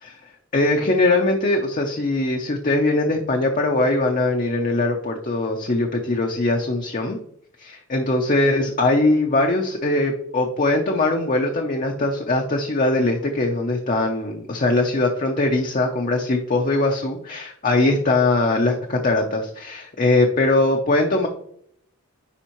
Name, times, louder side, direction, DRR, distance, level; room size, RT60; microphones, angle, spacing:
voice 1, 0.5-7.2 7.6-21.3, left 2 dB, 35° left, 2 dB, 0.6 m, -21 dB
9.9 x 3.6 x 3.0 m, 0.68 s
head